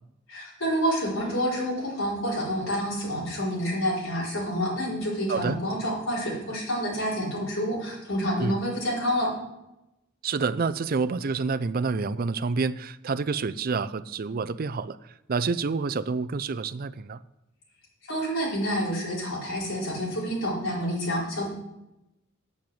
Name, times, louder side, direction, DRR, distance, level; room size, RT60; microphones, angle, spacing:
voice 1, 0.3-9.3 18.1-21.5, equal, 90° left, -6 dB, 4.6 m, -28 dB
voice 2, 10.2-15.0 15.3-17.2, right 4 dB, 45° right, 14 dB, 0.5 m, -28 dB
8.8 x 7.7 x 7.7 m, 0.92 s
head